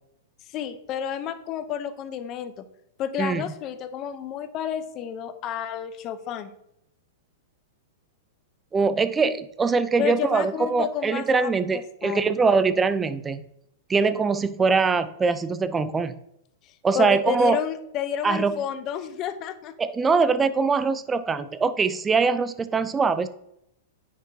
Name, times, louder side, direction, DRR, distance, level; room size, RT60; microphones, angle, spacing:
voice 1, 0.5-2.7 3.0-6.5 10.0-12.4 16.6-19.7, left 9 dB, 35° left, 11 dB, 0.8 m, -31 dB
voice 2, 8.7-13.4 13.9-16.1 16.8-17.6 18.2-18.6 19.8-23.3, right 4 dB, 15° right, 13 dB, 0.5 m, -22 dB
9.3 x 6.0 x 2.9 m, 0.78 s
hypercardioid pair, 115°, 0 cm